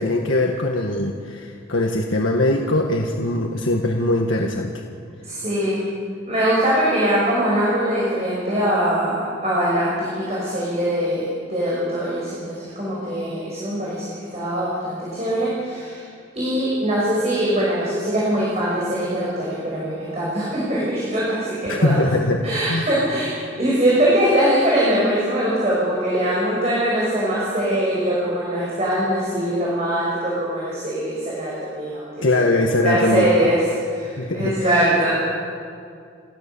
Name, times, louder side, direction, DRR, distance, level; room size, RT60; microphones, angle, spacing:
voice 1, 0.0-4.8 21.7-22.9 32.2-33.5 34.2-34.8, left 1 dB, 90° left, 1 dB, 1.6 m, -21 dB
voice 2, 5.2-5.9 6.3-14.0 14.3-16.0 16.3-22.0 22.4-23.3 23.6-32.1 32.3-33.6 33.9-35.1, right 1 dB, 35° right, -7 dB, 6.0 m, -22 dB
29.5 x 15.5 x 7.1 m, 2.3 s
head